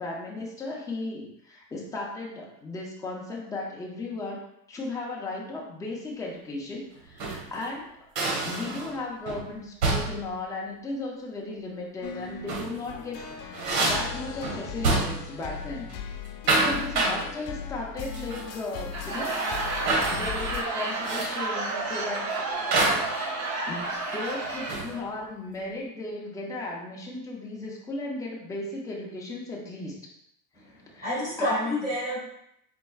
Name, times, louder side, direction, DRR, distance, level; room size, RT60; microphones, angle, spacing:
voice 1, 0.0-4.4 4.7-8.1 8.4-15.9 16.6-19.4 19.8-22.9 23.6-30.0 30.9-31.8, left 2 dB, 10° left, -3 dB, 0.4 m, -36 dB
sound 1, 7.0-7.5 8.2-9.0 9.3-9.5 9.8-10.3 12.3-12.8 13.2-15.4 15.6-15.9 16.3-17.2 18.1-18.5 18.8-18.9 19.9-20.2 21.0-21.4 22.7-23.1 24.2-25.0, right 2 dB, 80° right, 1.4 m, -27 dB
sound 2, 12.0-20.6, left 7 dB, 70° left, 0.8 m, -38 dB
Laughter / Crowd, 18.8-25.0, right 2 dB, 35° right, 0.7 m, -31 dB
voice 2, 30.5-32.2, left 1 dB, 15° right, -9 dB, 1.5 m, -29 dB
4.3 x 4.3 x 2.3 m, 0.77 s
supercardioid pair, 145°, 48 cm